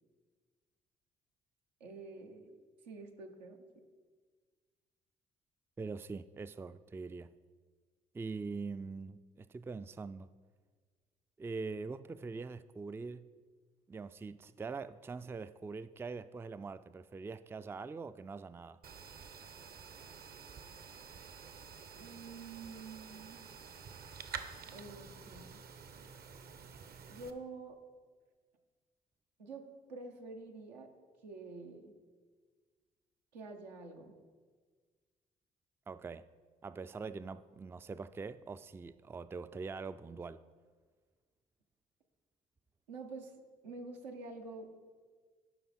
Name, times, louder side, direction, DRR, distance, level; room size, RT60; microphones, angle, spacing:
voice 1, 1.8-2.5 2.8-3.6 21.9-23.4 24.7-25.6 27.1-27.8 29.4-29.6 29.9-30.9 31.2-31.9 33.3-34.1 42.9-43.3 43.6-44.7, right 3 dB, 85° right, 0.9 m, -47 dB
voice 2, 5.8-7.3 8.1-10.3 11.4-13.3 13.9-18.8 35.9-36.2 36.6-40.4, right 4 dB, 10° right, 0.3 m, -43 dB
sound 1, 18.8-27.3, right 6 dB, 50° right, 0.8 m, -49 dB
11.0 x 5.5 x 4.2 m
hypercardioid pair, 45°, 21 cm